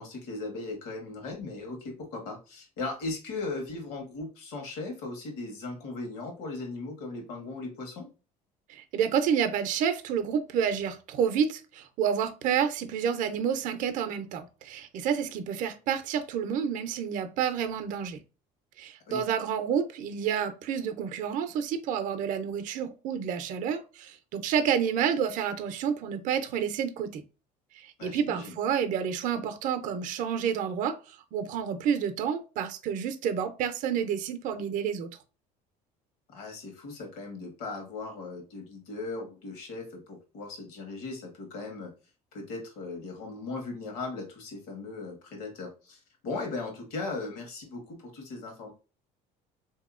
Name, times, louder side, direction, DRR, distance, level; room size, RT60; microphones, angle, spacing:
voice 1, 0.0-8.1 19.1-19.2 28.0-28.5 36.3-41.9 42.3-48.7, left 3 dB, 75° left, 1.2 m, -38 dB
voice 2, 8.7-18.2 18.8-27.2 27.7-35.2, right 8 dB, 55° right, 0.5 m, -29 dB
3.5 x 2.7 x 2.4 m
cardioid pair, 130°, 16 cm